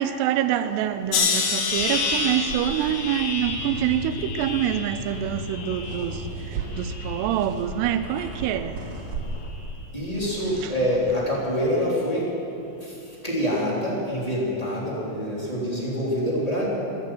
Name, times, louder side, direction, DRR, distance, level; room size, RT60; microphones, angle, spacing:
voice 1, 0.0-8.8 10.6-10.7, right 10 dB, 80° right, 2.6 m, -26 dB
sound 1, 1.1-6.3 6.7-7.4 8.1-8.4, left 4 dB, 75° left, 3.4 m, -29 dB
sound 2, 1.7-11.6, right 3 dB, 55° right, 1.5 m, -39 dB
sound 3, 3.3-9.8, left 1 dB, 60° left, 3.1 m, -37 dB
voice 2, 9.9-12.3 12.8-12.9 13.2-16.6, equal, 10° left, 2.7 m, -26 dB
14.5 x 10.5 x 7.7 m
omnidirectional pair, 4.9 m